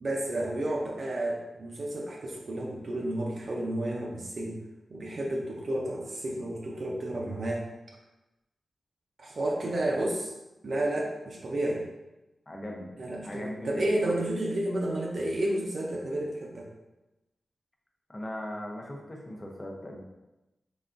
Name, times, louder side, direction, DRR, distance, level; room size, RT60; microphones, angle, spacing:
voice 1, 0.0-4.6 4.9-7.6 9.2-10.2 10.6-11.9 13.0-16.7, right 1 dB, 55° right, -2 dB, 0.5 m, -31 dB
voice 2, 12.5-12.9 13.2-14.2 18.1-20.0, left 1 dB, 25° left, 0 dB, 0.6 m, -39 dB
3.8 x 3.3 x 2.5 m, 1.0 s
wide cardioid pair, 120°, 0 cm